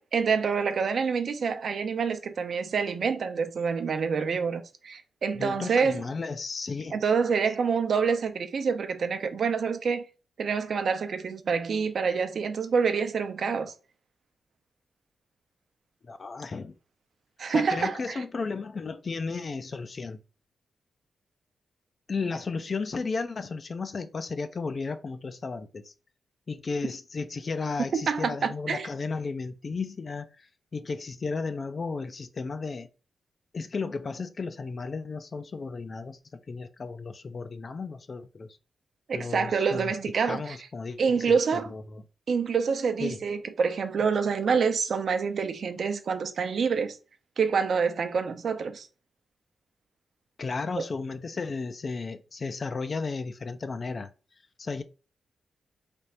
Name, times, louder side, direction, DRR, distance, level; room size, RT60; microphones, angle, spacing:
voice 1, 0.0-6.0 6.9-10.0 10.4-13.7 17.4-18.2 28.1-28.9 39.1-40.6 41.0-41.7 42.3-47.0 47.4-48.9 50.8-50.9, right 5 dB, 65° right, 0.6 m, -27 dB
voice 2, 5.4-7.0 16.0-16.8 17.5-20.2 22.1-25.9 26.5-32.9 33.5-38.6 39.1-39.9 40.3-42.0 43.0-43.2 50.4-54.1 54.6-54.8, left 4 dB, 45° left, 0.4 m, -34 dB
3.4 x 2.5 x 4.2 m
cardioid pair, 90°, 0 cm